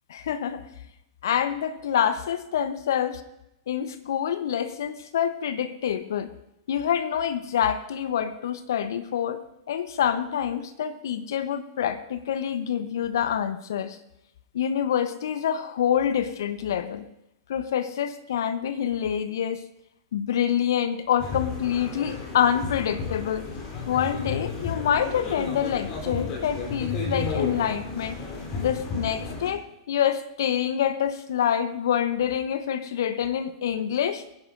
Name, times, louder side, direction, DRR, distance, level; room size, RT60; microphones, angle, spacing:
voice 1, 0.1-0.7 1.2-3.2 3.7-6.3 6.7-9.4 9.7-14.0 14.5-17.0 17.5-19.6 20.1-23.5 23.9-28.2 28.6-34.2, left 9 dB, 65° left, 11 dB, 0.9 m, -26 dB
sound 1, 21.2-29.5, left 4 dB, 40° left, 3.5 m, -33 dB
23.0 x 10.5 x 2.6 m, 0.83 s
figure-of-eight pair, 100°, 2 cm